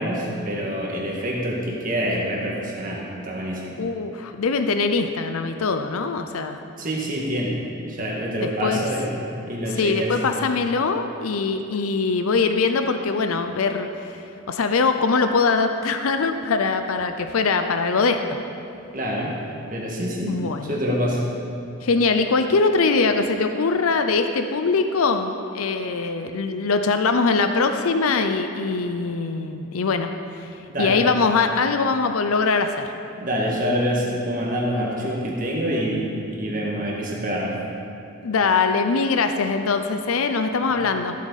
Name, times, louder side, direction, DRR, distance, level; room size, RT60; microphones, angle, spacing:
voice 1, 0.0-3.7 6.8-7.6 7.9-9.1 9.4-10.1 18.9-19.4 19.7-20.4 20.6-21.2 30.7-31.0 33.2-37.6, equal, 40° right, -3 dB, 1.9 m, -26 dB
voice 2, 3.8-6.6 8.4-8.8 9.7-14.2 14.5-18.4 20.3-20.8 21.8-30.1 30.4-30.5 30.8-32.9 38.2-41.1, left 4 dB, 85° left, 7 dB, 0.6 m, -22 dB
14.5 x 8.4 x 4.1 m, 2.7 s
head